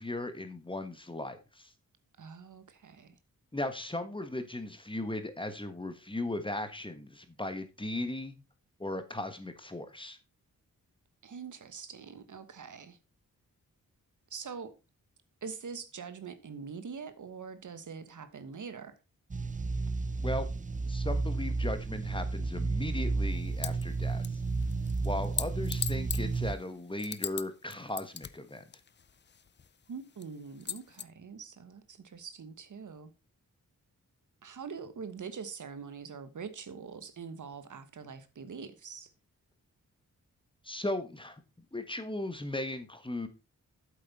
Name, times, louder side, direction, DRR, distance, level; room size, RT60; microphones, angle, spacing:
voice 1, 0.0-1.7 3.5-8.4 8.8-10.2 20.2-20.5 20.9-24.2 25.0-28.6 40.6-41.4 41.7-43.3, left 1 dB, 15° left, 1.4 m, -37 dB
voice 2, 2.2-3.2 11.2-13.0 14.3-14.7 15.4-19.0 29.9-33.1 34.4-39.1, right 5 dB, 65° right, 1.2 m, -44 dB
sound 1, 19.3-26.5, right 3 dB, 25° right, 0.6 m, -32 dB
sound 2, 23.6-23.8 24.2-27.5 27.7-29.7 30.2-30.3 30.6-31.0, left 7 dB, 35° left, 0.4 m, -38 dB
8.4 x 7.6 x 4.1 m
wide cardioid pair, 95°, 33 cm